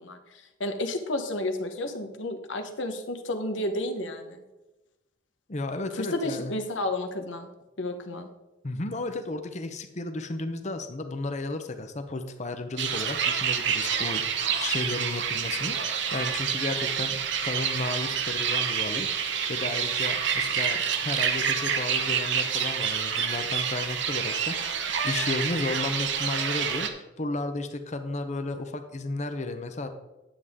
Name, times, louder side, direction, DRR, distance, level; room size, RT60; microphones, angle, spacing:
voice 1, 0.0-4.4 5.9-7.5 7.8-8.3, left 1 dB, 75° left, 6 dB, 1.1 m, -32 dB
voice 2, 5.5-6.5 8.6-29.9, left 2 dB, 35° left, 7 dB, 0.8 m, -33 dB
sound 1, 12.8-26.9, right 7 dB, 65° right, 0.9 m, -28 dB
10.0 x 8.3 x 3.7 m, 1.0 s
head